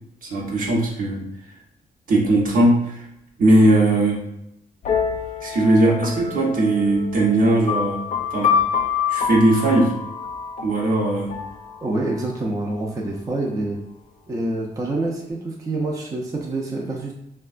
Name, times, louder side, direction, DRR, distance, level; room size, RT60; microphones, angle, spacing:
voice 1, 0.2-1.3 2.1-3.1 3.4-4.3 5.4-8.1 8.3-8.5 9.1-10.0 10.6-11.4, right 1 dB, 65° right, -2 dB, 0.8 m, -19 dB
sound 1, 4.8-12.4, left 7 dB, 60° left, 0.5 m, -26 dB
voice 2, 11.8-13.8 14.3-17.1, right 2 dB, 20° right, -1 dB, 0.4 m, -26 dB
3.4 x 2.2 x 2.4 m, 0.81 s
cardioid pair, 110°, 15 cm